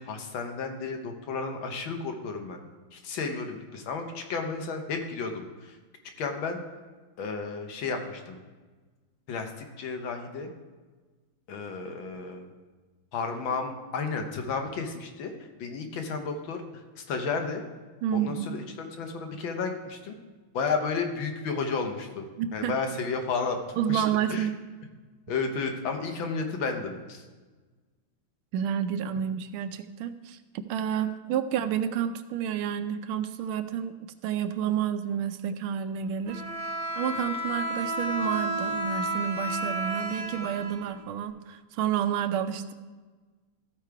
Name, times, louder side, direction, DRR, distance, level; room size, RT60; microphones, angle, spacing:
voice 1, 0.0-2.6 2.9-5.8 6.2-6.6 7.2-8.4 9.3-9.5 9.8-10.5 11.5-12.5 13.1-16.6 17.0-17.6 18.1-20.2 20.5-22.2 22.5-24.0 24.3-24.5 25.3-27.2, left 4 dB, 70° left, 5 dB, 1.7 m, -32 dB
voice 2, 18.0-18.6 22.4-22.7 23.8-24.5 28.5-33.9 34.2-36.4 37.0-42.7, right 9 dB, 80° right, 10 dB, 1.4 m, -30 dB
Bowed string instrument, 36.3-41.3, right 1 dB, 55° right, 2.0 m, -32 dB
14.0 x 5.0 x 4.6 m, 1.3 s
omnidirectional pair, 2.3 m